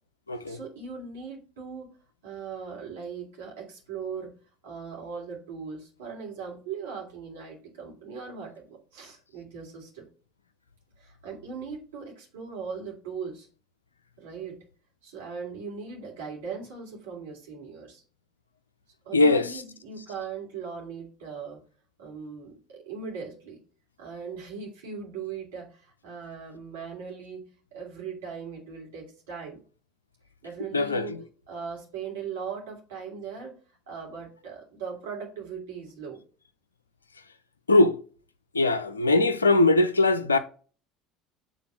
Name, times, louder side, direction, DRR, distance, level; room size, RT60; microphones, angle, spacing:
voice 1, 0.3-1.9 2.2-4.3 4.6-10.1 11.0-13.5 14.2-14.6 15.0-18.0 19.0-21.6 22.0-23.6 24.0-27.4 27.7-29.6 30.4-31.2 31.5-33.6 33.9-36.2, right 6 dB, 70° right, 2.9 m, -39 dB
voice 2, 19.1-19.6 30.7-31.2 37.7-38.0 38.5-40.4, left 2 dB, 85° left, 0.4 m, -21 dB
6.9 x 3.9 x 5.9 m
figure-of-eight pair, 65°, 0 cm